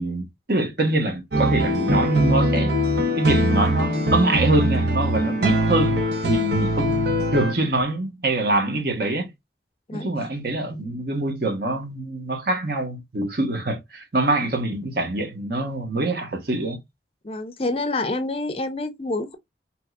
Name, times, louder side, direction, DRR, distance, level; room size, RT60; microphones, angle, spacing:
voice 1, 0.0-2.7 3.2-9.3 9.9-16.8, right 2 dB, 55° right, 1.1 m, -24 dB
sound 1, 1.3-7.5, equal, 75° right, 0.9 m, -22 dB
voice 2, 17.2-19.4, left 2 dB, 30° left, 0.5 m, -27 dB
3.6 x 2.9 x 2.3 m
head